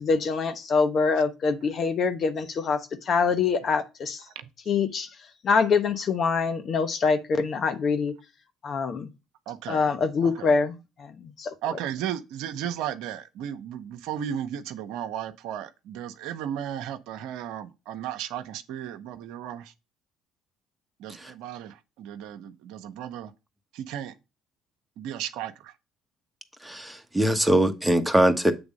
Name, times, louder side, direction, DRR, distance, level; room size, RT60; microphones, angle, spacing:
voice 1, 0.0-4.2 4.7-5.1 5.4-8.1 8.6-9.1 9.7-11.5, left 5 dB, 50° left, 1.0 m, -25 dB
voice 2, 9.5-9.9 10.2-10.5 11.6-19.7 21.0-23.3 23.7-24.1 25.0-25.7, right 10 dB, 75° right, 0.7 m, -35 dB
voice 3, 26.6-28.5, right 1 dB, 5° right, 1.2 m, -22 dB
7.9 x 3.5 x 5.2 m
hypercardioid pair, 60°, 0 cm